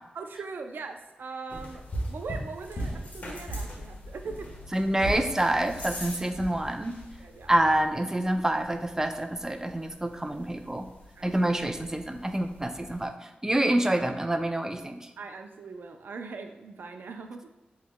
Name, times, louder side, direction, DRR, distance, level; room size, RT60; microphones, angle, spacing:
voice 1, 0.1-4.5 6.2-6.3 7.2-7.5 11.2-11.3 15.2-17.4, right 4 dB, 80° right, 6 dB, 0.4 m, -40 dB
sound 1, 1.5-13.1, equal, 50° left, 1.3 m, -40 dB
voice 2, 4.7-7.0 7.5-10.8 11.2-13.1 13.4-15.1, right 1 dB, 15° right, 6 dB, 0.5 m, -27 dB
7.7 x 3.1 x 2.2 m, 1.1 s
cardioid pair, 70°, 3 cm